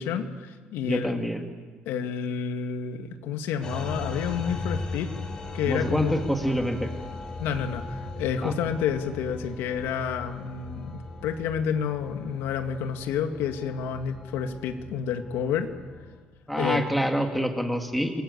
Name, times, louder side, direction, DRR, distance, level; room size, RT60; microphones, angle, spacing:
voice 1, 0.0-1.2 1.9-5.1 5.5-6.2 7.4-10.9 11.2-15.7 16.6-16.9, left 7 dB, 90° left, 6 dB, 2.2 m, -29 dB
voice 2, 0.8-1.4 5.6-6.9 8.4-8.6 16.5-18.2, equal, ahead, 4 dB, 2.1 m, -26 dB
sound 1, 3.6-16.2, left 2 dB, 20° left, 4.3 m, -38 dB
29.5 x 21.0 x 8.4 m, 1.5 s
cardioid pair, 175°, 4 cm